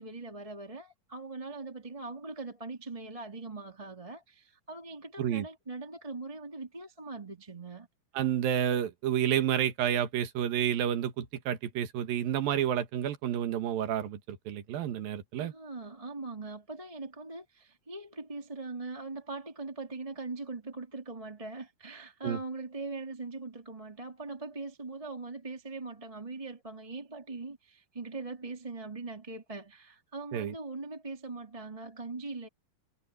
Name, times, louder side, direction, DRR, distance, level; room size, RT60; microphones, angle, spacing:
voice 1, 0.0-7.9 15.4-32.5, right 3 dB, 10° right, 2.3 m, -41 dB
voice 2, 8.2-15.5 22.2-22.4 30.3-30.5, right 10 dB, 75° right, 3.4 m, -30 dB
omnidirectional pair, 4.2 m